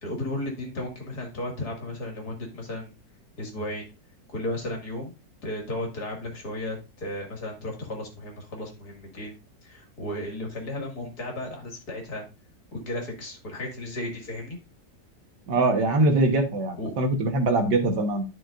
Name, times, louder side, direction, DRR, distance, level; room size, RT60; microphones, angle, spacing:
voice 1, 0.0-2.9 3.4-3.8 4.3-5.1 5.4-9.3 9.6-12.2 12.7-14.6 16.8-16.9, left 1 dB, 60° left, 1 dB, 2.7 m, -34 dB
voice 2, 15.5-18.3, right 2 dB, 70° right, 5 dB, 1.9 m, -23 dB
11.5 x 6.0 x 2.5 m, 0.28 s
omnidirectional pair, 1.9 m